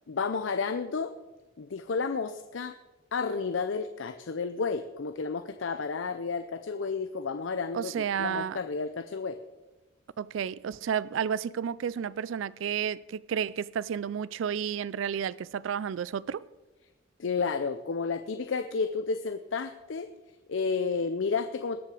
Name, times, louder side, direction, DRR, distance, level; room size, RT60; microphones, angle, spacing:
voice 1, 0.1-1.1 1.6-2.7 3.1-7.9 8.2-9.4 17.2-20.1 20.5-21.8, left 4 dB, 75° left, 0.5 m, -31 dB
voice 2, 7.7-8.6 10.2-16.4, right 8 dB, 80° right, 0.3 m, -31 dB
19.5 x 6.8 x 4.9 m
head